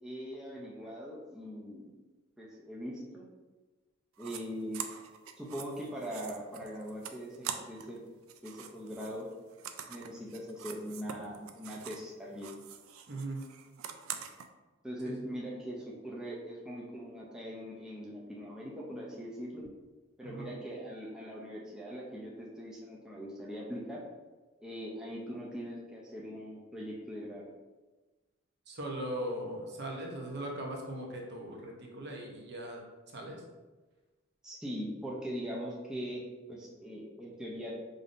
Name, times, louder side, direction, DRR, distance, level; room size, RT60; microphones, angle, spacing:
voice 1, 0.0-1.9 2.4-3.3 4.2-4.8 5.4-8.0 8.4-9.3 9.9-12.5 14.8-19.6 20.2-24.0 24.6-27.5 34.4-37.8, equal, 5° right, -5 dB, 0.5 m, -41 dB
sound 1, 4.2-4.4 4.7-8.0 8.2-12.1 12.4-14.5, right 8 dB, 90° right, 0.3 m, -44 dB
voice 2, 13.1-13.4 15.0-15.4 20.2-20.5 28.7-32.8 33.1-33.4, right 1 dB, 55° right, 0 dB, 0.7 m, -39 dB
5.1 x 2.6 x 2.5 m, 1.2 s
head